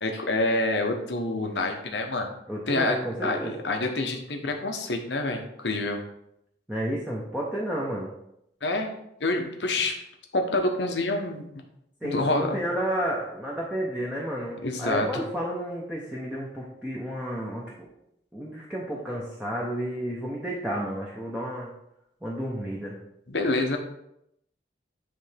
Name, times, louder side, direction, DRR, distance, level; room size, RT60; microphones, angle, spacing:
voice 1, 0.0-2.3 2.7-3.0 3.2-6.0 8.6-8.9 9.2-9.9 10.3-11.5 12.0-12.6 14.6-15.1 23.3-23.8, left 2 dB, 80° left, 3 dB, 1.0 m, -27 dB
voice 2, 2.5-3.5 6.7-8.1 12.0-17.6 18.3-21.7 22.2-23.0, equal, 5° right, -5 dB, 0.8 m, -31 dB
9.7 x 3.4 x 3.4 m, 0.79 s
head